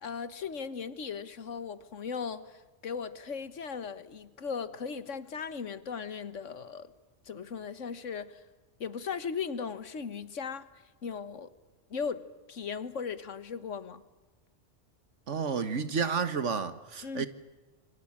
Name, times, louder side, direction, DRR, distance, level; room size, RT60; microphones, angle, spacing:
voice 1, 0.0-6.9 7.2-8.4 8.8-10.7 11.0-11.5 11.9-14.0 17.0-17.3, left 6 dB, 90° left, 1.7 m, -37 dB
voice 2, 15.3-17.3, right 5 dB, 80° right, 1.8 m, -31 dB
27.0 x 24.5 x 8.8 m
omnidirectional pair, 1.2 m